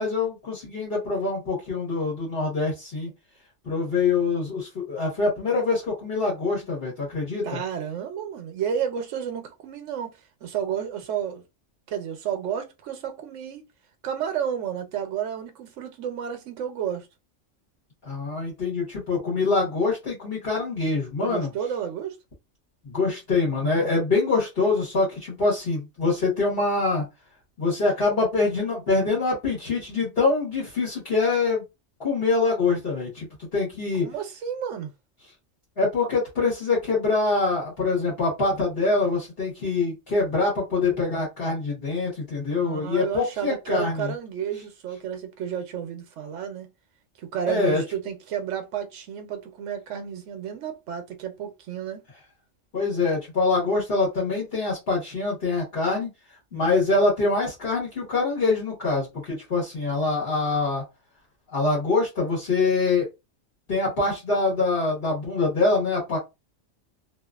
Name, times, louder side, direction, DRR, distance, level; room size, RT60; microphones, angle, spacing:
voice 1, 0.0-3.1 3.6-7.6 18.0-21.5 22.8-27.1 27.6-31.6 32.0-34.1 35.8-44.1 47.5-47.8 52.7-56.1 56.5-60.8 61.5-63.1 63.7-66.2, left 3 dB, 50° left, 1.3 m, -24 dB
voice 2, 7.4-10.1 10.4-11.4 11.9-13.6 14.0-17.1 21.2-22.2 34.0-34.9 42.5-46.7 47.2-52.0 56.5-56.7, right 8 dB, 75° right, 1.0 m, -31 dB
2.7 x 2.4 x 2.3 m
omnidirectional pair, 1.3 m